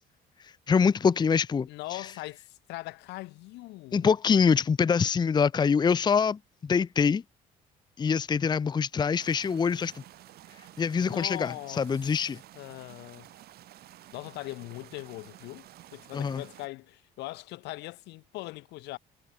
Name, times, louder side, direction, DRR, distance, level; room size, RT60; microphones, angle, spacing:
voice 1, 0.7-2.0 3.9-7.2 8.0-10.0 10.8-12.4 16.1-16.4, left 6 dB, 25° left, 0.7 m, -25 dB
voice 2, 1.7-4.1 10.9-11.9 12.6-13.3 14.1-15.7 15.9-19.0, left 20 dB, 90° left, 3.8 m, -40 dB
sound 1, 9.1-16.7, right 14 dB, 65° right, 1.7 m, -52 dB
cardioid pair, 110°, 17 cm